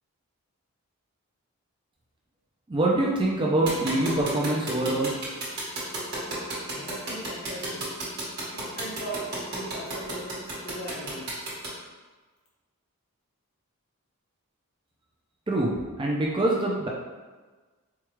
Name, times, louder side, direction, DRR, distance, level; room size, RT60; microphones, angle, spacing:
voice 1, 2.7-5.2 15.5-16.9, right 2 dB, 20° right, -3 dB, 0.4 m, -25 dB
sound 1, 3.7-11.7, right 2 dB, 50° right, 1.3 m, -32 dB
voice 2, 6.7-7.8 8.5-11.3, right 1 dB, 70° left, -5 dB, 1.1 m, -39 dB
4.6 x 2.3 x 3.0 m, 1.3 s
head